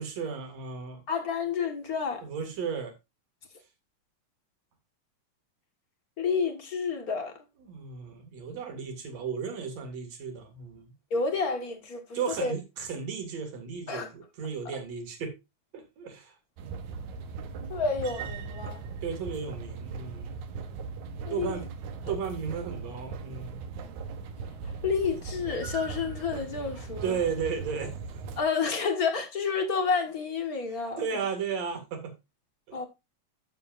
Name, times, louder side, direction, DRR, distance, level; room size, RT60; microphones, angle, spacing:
voice 1, 0.0-1.0 2.2-2.9 7.6-10.9 12.1-15.3 15.7-16.3 19.0-20.4 21.3-21.7 22.1-23.6 27.0-27.9 30.7-32.1 32.7-32.8, right 6 dB, 60° right, 3.3 m, -34 dB
voice 2, 1.1-2.2 6.2-7.3 11.1-12.0 12.4-12.5 13.9-14.1 17.7-18.8 21.3-21.6 24.8-27.2 28.4-31.0 32.7-32.9, left 5 dB, 40° left, 1.5 m, -29 dB
sound 1, 16.6-28.4, right 5 dB, 75° right, 2.5 m, -39 dB
12.5 x 6.9 x 2.5 m
omnidirectional pair, 3.4 m